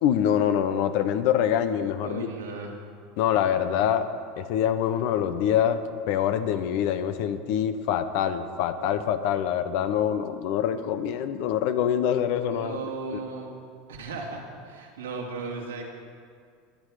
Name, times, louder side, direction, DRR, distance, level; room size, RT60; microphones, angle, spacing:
voice 1, 0.0-2.3 3.2-4.1 4.4-5.8 6.1-12.8 13.1-13.2, left 9 dB, 65° left, 10 dB, 1.0 m, -25 dB
voice 2, 2.0-2.7 12.5-13.5 13.9-15.9, right 4 dB, 90° right, -1 dB, 2.6 m, -36 dB
20.5 x 9.3 x 5.0 m, 2.1 s
hypercardioid pair, 90°, 0 cm